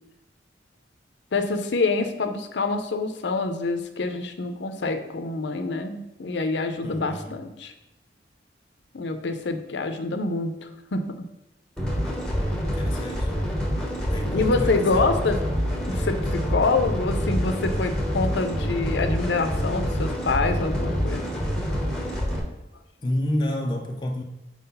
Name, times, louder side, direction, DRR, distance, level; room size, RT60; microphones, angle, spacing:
voice 1, 1.3-7.7 8.9-11.1 12.6-12.7 14.2-15.4 15.9-21.3, left 3 dB, 70° left, 0.6 m, -26 dB
voice 2, 6.8-7.5 12.6-13.4 14.1-15.1 23.0-24.2, left 1 dB, 25° left, 0.4 m, -30 dB
sound 1, 11.8-22.4, equal, 5° left, 0.8 m, -26 dB
4.6 x 3.9 x 5.5 m
head